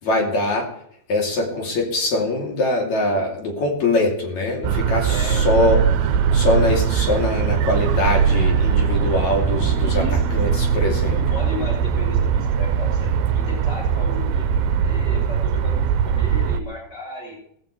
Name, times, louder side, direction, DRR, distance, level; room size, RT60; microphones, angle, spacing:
voice 1, 0.0-0.7 1.1-5.8 6.3-10.0 10.3-11.2, left 2 dB, 55° left, -1 dB, 4.1 m, -22 dB
sound 1, 4.6-16.6, right 7 dB, 90° right, 2.6 m, -20 dB
voice 2, 5.1-5.4 9.8-10.2 11.0-17.3, equal, 15° left, -3 dB, 7.5 m, -34 dB
Guitar, 8.1-14.7, left 4 dB, 85° left, 7.6 m, -39 dB
17.5 x 14.5 x 3.3 m, 0.69 s
omnidirectional pair, 4.2 m